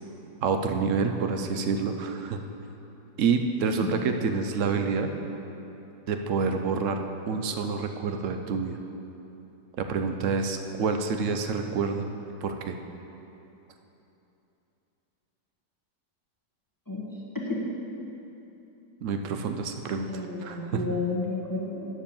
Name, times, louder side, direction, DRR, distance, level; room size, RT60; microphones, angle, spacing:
voice 1, 0.4-2.4 3.2-5.1 6.1-8.8 9.8-12.1 12.4-12.8 19.0-20.8, right 5 dB, 75° right, 5 dB, 0.7 m, -28 dB
voice 2, 3.8-4.2 16.9-17.1 17.5-17.6 20.1-21.9, left 3 dB, 15° left, -4 dB, 1.0 m, -31 dB
9.4 x 7.2 x 7.1 m, 3.0 s
omnidirectional pair, 2.0 m